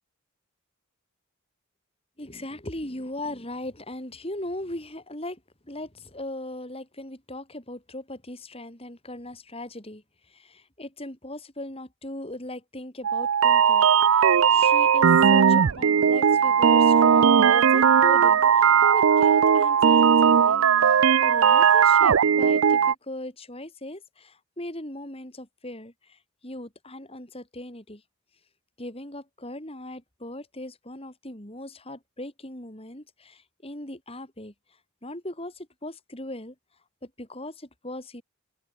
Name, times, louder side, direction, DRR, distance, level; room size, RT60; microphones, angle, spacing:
voice 1, 2.2-10.0 10.3-28.0 28.8-34.5 35.0-36.5 37.0-38.2, left 1 dB, 25° left, 4.8 m, -39 dB
sound 1, 13.0-22.9, right 7 dB, 60° right, 0.4 m, -18 dB
open air
head